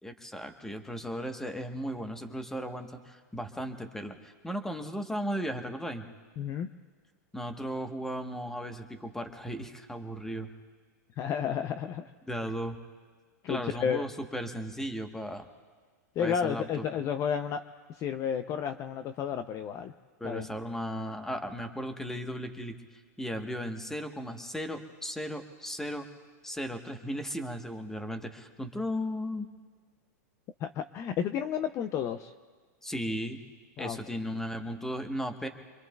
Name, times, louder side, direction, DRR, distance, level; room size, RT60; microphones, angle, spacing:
voice 1, 0.0-6.1 7.3-10.5 12.3-12.8 13.5-15.5 16.2-16.8 20.2-22.8 23.2-26.1 26.4-29.5 32.8-33.4 33.8-35.5, equal, 5° left, 6 dB, 1.1 m, -36 dB
voice 2, 6.4-6.7 11.2-12.1 13.4-14.0 16.2-17.6 18.0-19.9 20.2-20.5 30.6-32.3 33.8-34.0, left 8 dB, 35° left, 9 dB, 0.5 m, -31 dB
26.5 x 22.0 x 2.3 m, 1.5 s
hypercardioid pair, 120°, 9 cm